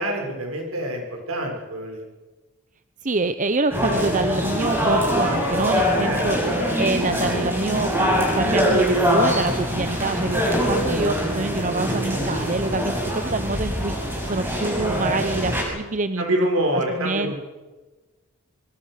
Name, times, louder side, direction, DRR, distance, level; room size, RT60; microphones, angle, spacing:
voice 1, 0.0-2.0 6.0-6.3 12.1-12.2 16.2-17.3, right 1 dB, 65° right, 2 dB, 6.6 m, -26 dB
voice 2, 3.0-6.4 6.8-13.9 14.3-16.4 16.7-17.3, right 3 dB, 35° right, 11 dB, 0.8 m, -26 dB
sound 1, 3.7-15.6, equal, 10° right, 7.1 m, -23 dB
24.5 x 24.0 x 6.7 m, 1.2 s
head